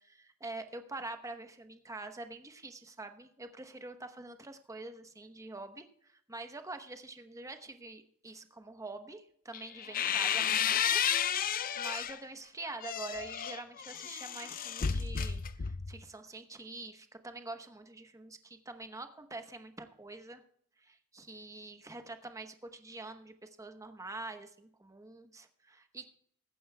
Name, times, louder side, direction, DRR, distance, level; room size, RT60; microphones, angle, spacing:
voice 1, 0.0-11.0 11.5-20.4 20.8-26.1, right 2 dB, 15° right, 7 dB, 0.9 m, -46 dB
sound 1, 9.5-12.2 12.7-16.0, left 8 dB, 40° left, 0.5 m, -32 dB
20.5 x 9.4 x 2.2 m, 0.66 s
head